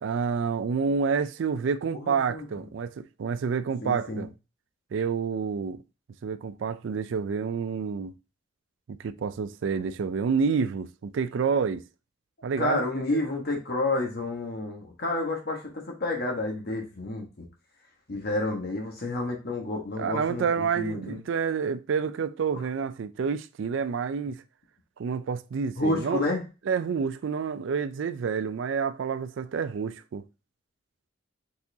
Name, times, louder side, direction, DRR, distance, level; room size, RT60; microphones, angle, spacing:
voice 1, 0.0-4.3 4.9-5.8 6.2-8.1 8.9-11.8 12.4-13.2 20.0-24.4 25.0-26.2 26.7-30.2, right 6 dB, 65° right, 0.4 m, -28 dB
voice 2, 1.9-2.4 3.8-4.2 12.6-17.5 18.1-21.2 22.5-22.6 25.8-26.4, left 2 dB, 50° left, 1.2 m, -30 dB
4.4 x 4.2 x 2.7 m
head